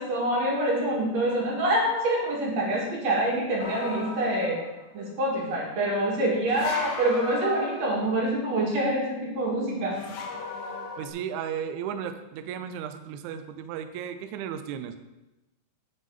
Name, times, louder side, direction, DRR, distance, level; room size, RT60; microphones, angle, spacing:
voice 1, 0.0-4.6 4.9-10.0, right 1 dB, 55° right, -3 dB, 2.9 m, -26 dB
sound 1, 3.6-4.9 6.5-8.3 9.9-11.1, left 4 dB, 85° left, 2.7 m, -37 dB
voice 2, 11.0-15.0, right 8 dB, 75° right, 9 dB, 1.8 m, -34 dB
8.9 x 8.2 x 3.7 m, 0.99 s
omnidirectional pair, 3.9 m